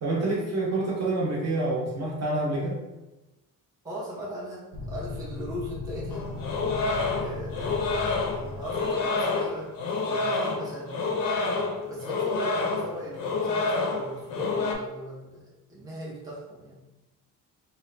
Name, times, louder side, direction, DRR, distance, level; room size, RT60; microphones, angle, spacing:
voice 1, 0.0-2.8, right 2 dB, 50° right, -3 dB, 0.9 m, -27 dB
voice 2, 3.8-6.3 7.0-9.7 10.0-11.0 11.9-16.8, equal, 10° right, -6 dB, 0.6 m, -39 dB
sound 1, 4.7-9.3, left 4 dB, 85° right, 0.8 m, -37 dB
sound 2, 6.1-14.7, left 3 dB, 70° left, 0.6 m, -28 dB
2.9 x 2.4 x 3.2 m, 1.0 s
cardioid pair, 155°, 35 cm